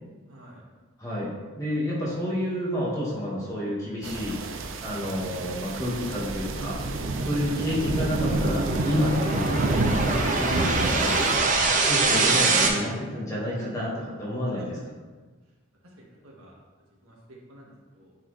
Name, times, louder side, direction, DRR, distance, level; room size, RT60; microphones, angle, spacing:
voice 1, 0.3-0.6 14.4-14.7 16.0-16.6 17.0-18.1, equal, 90° right, -3 dB, 1.7 m, -50 dB
voice 2, 1.6-4.4 4.8-6.8 7.2-9.5 10.0-11.1 11.8-14.8, equal, 15° left, -6 dB, 1.7 m, -29 dB
sound 1, 4.0-11.4, right 2 dB, 70° right, 0.6 m, -29 dB
sound 2, 5.8-12.7, right 3 dB, 35° right, 0.8 m, -25 dB
9.3 x 4.3 x 3.3 m, 1.3 s
head